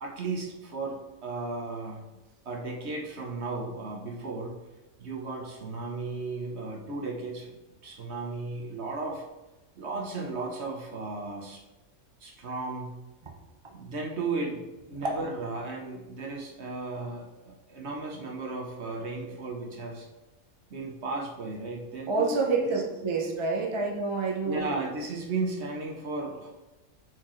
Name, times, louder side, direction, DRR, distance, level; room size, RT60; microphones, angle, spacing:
voice 1, 0.0-2.1 2.5-4.6 5.0-7.5 7.8-9.2 9.8-11.6 12.2-13.0 13.7-20.1 20.7-22.7 24.4-26.5, right 3 dB, 50° right, 0 dB, 1.2 m, -35 dB
voice 2, 22.1-24.7, right 4 dB, 30° right, 1 dB, 0.6 m, -28 dB
7.8 x 4.7 x 3.1 m, 1.1 s
omnidirectional pair, 1.5 m